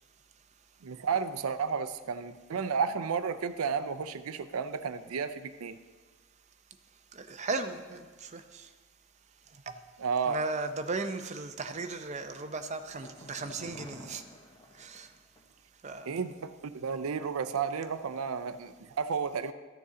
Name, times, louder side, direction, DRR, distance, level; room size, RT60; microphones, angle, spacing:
voice 1, 0.8-5.8 10.0-10.4 16.1-19.5, right 6 dB, 85° right, 12 dB, 0.5 m, -32 dB
voice 2, 7.2-8.7 9.7-9.8 10.3-14.2 14.8-15.1 15.8-16.1, right 3 dB, 35° right, 8 dB, 0.6 m, -36 dB
sound 1, 11.9-15.6 15.9-16.0, left 1 dB, 20° left, 0.9 m, -52 dB
13.5 x 6.8 x 3.7 m, 1.4 s
head